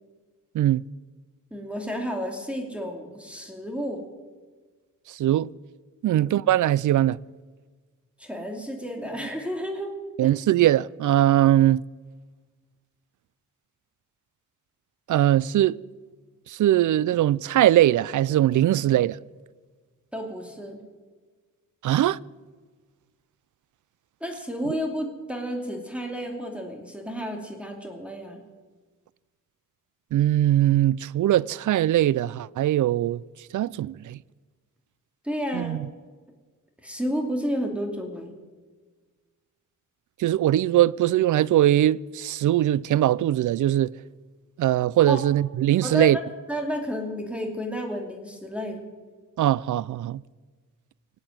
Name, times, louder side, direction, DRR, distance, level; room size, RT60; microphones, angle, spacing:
voice 1, 1.5-4.0 6.0-6.2 8.2-10.0 10.2-10.3 20.1-20.8 24.2-28.4 35.2-35.8 36.8-38.3 45.1-45.2 45.8-46.2 46.5-48.8, equal, 5° right, 2.4 m, -31 dB
voice 2, 5.1-5.5 6.0-7.2 10.2-11.8 15.1-15.8 16.5-19.2 21.8-22.2 30.1-33.2 33.5-34.2 35.5-35.8 40.2-43.9 44.6-46.2 49.4-50.2, right 13 dB, 65° right, 0.4 m, -21 dB
19.0 x 8.7 x 8.0 m
cardioid pair, 100°, 32 cm